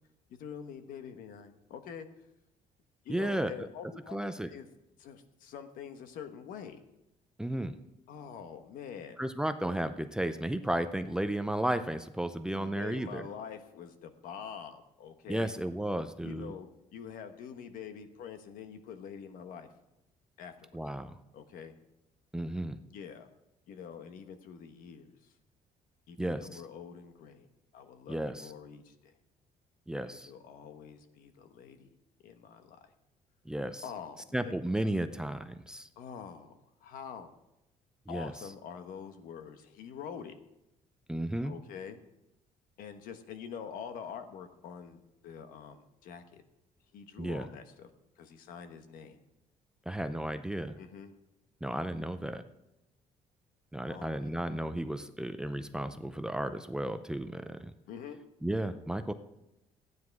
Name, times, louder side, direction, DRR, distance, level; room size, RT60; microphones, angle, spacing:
voice 1, 0.4-2.1 3.0-4.2 4.5-4.7 5.0-6.8 8.1-9.2 12.5-15.5 16.2-19.7 20.4-20.7 21.3-21.7 22.9-23.3 23.7-25.3 26.1-27.5 27.7-29.1 30.1-31.9 32.2-32.9 33.8-34.5 36.0-37.3 38.1-40.4 41.4-42.0 42.8-46.4 46.9-47.9 48.2-49.2 50.8-51.1 53.9-54.4 57.9-58.2, left 7 dB, 75° left, 8 dB, 1.3 m, -45 dB
voice 2, 3.1-3.5 4.1-4.5 7.4-7.7 9.2-13.2 15.3-16.5 20.7-21.2 22.3-22.8 26.2-26.6 28.1-28.5 29.9-30.3 33.5-33.8 34.3-35.9 38.1-38.3 41.1-41.5 47.2-47.5 49.9-50.8 51.6-52.4 53.7-57.7 58.4-59.1, right 1 dB, 5° right, 9 dB, 0.5 m, -33 dB
15.0 x 9.6 x 4.7 m, 0.89 s
cardioid pair, 155°, 14 cm